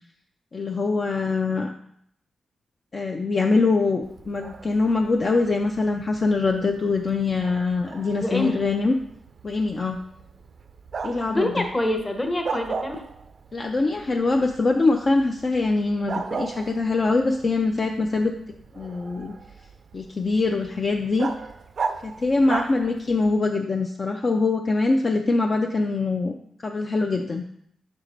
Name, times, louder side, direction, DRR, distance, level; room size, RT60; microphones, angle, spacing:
voice 1, 0.5-1.7 2.9-8.9 9.4-10.0 11.0-11.6 13.5-18.3 18.8-19.3 19.9-21.3 22.0-26.3 26.6-27.4, left 3 dB, 40° left, 1 dB, 0.5 m, -23 dB
Bark, 4.0-23.4, right 4 dB, 55° right, 0.5 m, -37 dB
voice 2, 8.2-8.6 11.3-13.0, left 1 dB, 20° left, 5 dB, 1.0 m, -25 dB
6.6 x 4.7 x 3.9 m, 0.69 s
cardioid pair, 95°, 0 cm